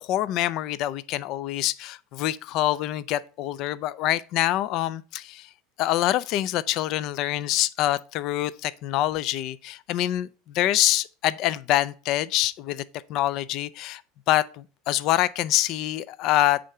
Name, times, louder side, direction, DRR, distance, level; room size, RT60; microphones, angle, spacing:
voice 1, 0.0-5.5 5.8-10.3 10.5-12.8 13.1-14.0 14.3-16.6, left 14 dB, 55° left, 0.4 m, -25 dB
8.6 x 3.8 x 5.6 m
supercardioid pair, 125°, 0 cm